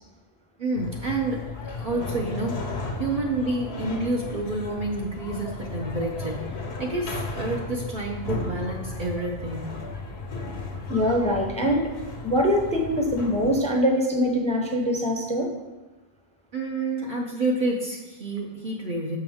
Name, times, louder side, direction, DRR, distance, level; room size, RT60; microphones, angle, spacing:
voice 1, 0.6-2.7 3.0-9.8 16.5-19.2, right 2 dB, 55° right, -2 dB, 0.9 m, -29 dB
sound 1, 0.7-13.6, left 3 dB, 85° left, 1.2 m, -35 dB
voice 2, 10.9-11.9 12.2-15.5, equal, 10° left, 1 dB, 0.6 m, -23 dB
6.9 x 5.9 x 3.5 m, 1.1 s
omnidirectional pair, 1.0 m